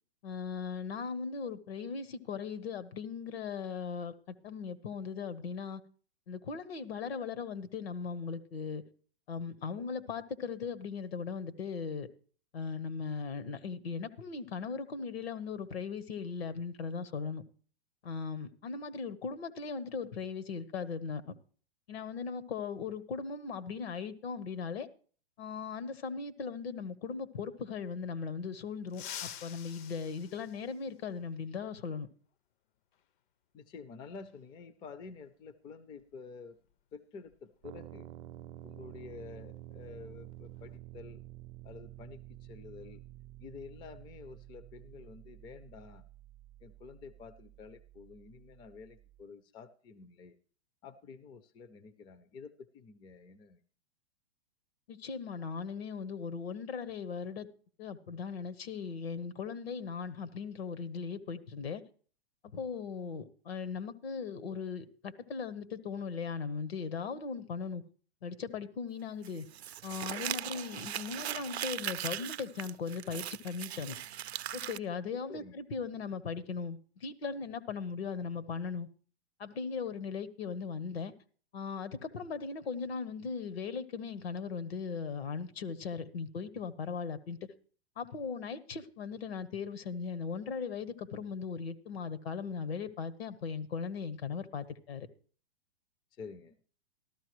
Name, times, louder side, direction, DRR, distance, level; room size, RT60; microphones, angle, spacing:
voice 1, 0.2-5.8 6.3-8.8 9.3-12.1 12.5-17.4 18.0-21.3 21.9-24.9 25.4-32.1 54.9-57.5 57.8-61.8 62.5-67.8 68.2-69.5 69.8-74.0 74.5-78.9 79.4-81.1 81.5-87.4 88.0-95.1, left 5 dB, 75° left, 13 dB, 1.2 m, -38 dB
sound 1, 28.9-31.3 32.9-33.0 34.3-34.4 36.0-36.1 36.5-36.7 37.2-39.4 39.6-39.9 40.3-40.8, left 10 dB, 55° left, 0.7 m, -48 dB
voice 2, 33.5-36.6 36.9-38.1 38.6-41.2 41.6-43.0 43.4-46.0 46.6-50.4 50.8-53.6 75.3-75.5 96.2-96.6, left 5 dB, 15° left, 13 dB, 0.4 m, -49 dB
sound 2, 37.6-49.3, right 15 dB, 40° right, 0.5 m, -50 dB
Crumpling crinkling, 69.2-74.8, right 11 dB, 85° right, 0.5 m, -39 dB
13.5 x 12.5 x 3.1 m, 0.42 s
hypercardioid pair, 130°, 31 cm